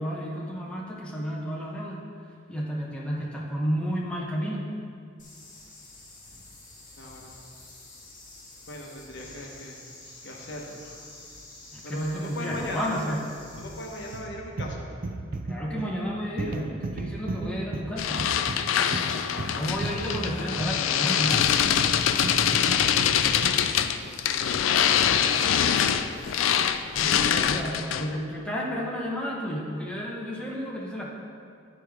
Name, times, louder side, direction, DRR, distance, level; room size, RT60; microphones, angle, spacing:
voice 1, 0.0-4.8 11.7-13.3 15.5-18.3 19.5-21.5 26.9-31.1, equal, 5° left, -5 dB, 0.9 m, -32 dB
sound 1, 5.2-14.2, left 2 dB, 45° left, 1.6 m, -48 dB
voice 2, 7.0-7.4 8.7-9.8 10.2-10.8 11.8-13.1 13.6-14.9 19.2-19.6 23.8-24.6 25.1-26.0, left 1 dB, 60° left, 0 dB, 1.0 m, -39 dB
sound 2, 14.1-23.7, right 2 dB, 45° right, 0.4 m, -35 dB
sound 3, 18.0-28.2, left 8 dB, 85° left, 0.4 m, -24 dB
10.5 x 5.0 x 3.5 m, 2.3 s
head